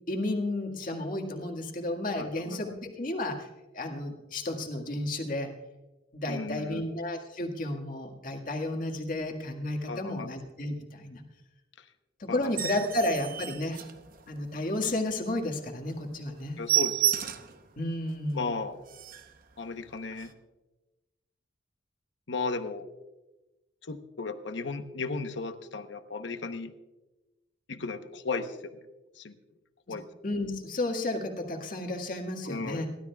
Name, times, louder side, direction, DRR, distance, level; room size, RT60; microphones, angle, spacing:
voice 1, 0.1-3.5 3.7-5.5 6.1-11.2 12.2-13.8 14.3-16.6 17.8-18.5 30.2-32.9, left 1 dB, 45° left, 2 dB, 1.8 m, -32 dB
voice 2, 2.2-2.8 6.3-6.9 9.9-10.3 11.8-11.9 12.3-12.5 16.6-17.2 18.3-18.8 19.6-20.3 22.3-22.9 23.8-26.7 27.7-28.8 29.1-29.4 29.9-30.1 32.4-32.9, left 3 dB, 70° left, 9 dB, 0.9 m, -35 dB
sound 1, 12.4-14.6 15.0-15.1 15.5-15.6 15.9-16.0 16.3-17.6 18.1-18.2 18.6-18.7 18.9-19.4 20.1-20.3, right 12 dB, 50° right, 0.8 m, -31 dB
29.5 x 12.5 x 2.3 m, 1.1 s
head